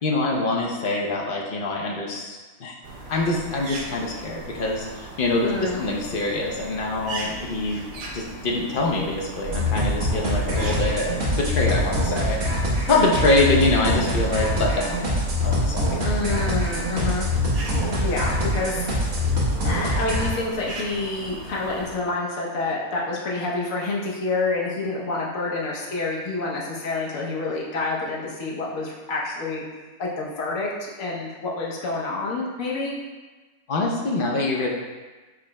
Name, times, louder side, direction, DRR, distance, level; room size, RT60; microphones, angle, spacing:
voice 1, 0.0-2.8 3.1-7.8 8.1-12.4 12.6-15.1 15.4-16.0 33.7-34.7, left 2 dB, 55° left, -1 dB, 0.6 m, -24 dB
sound 1, 2.8-22.0, right 2 dB, 55° right, 0.6 m, -38 dB
voice 2, 5.4-5.8 16.0-17.3 17.9-19.2 19.6-29.6 30.0-32.9, left 3 dB, 75° left, -3 dB, 1.2 m, -28 dB
sound 2, 9.4-20.3, left 1 dB, 85° right, 1.5 m, -24 dB
4.8 x 2.0 x 4.5 m, 1.3 s
omnidirectional pair, 1.4 m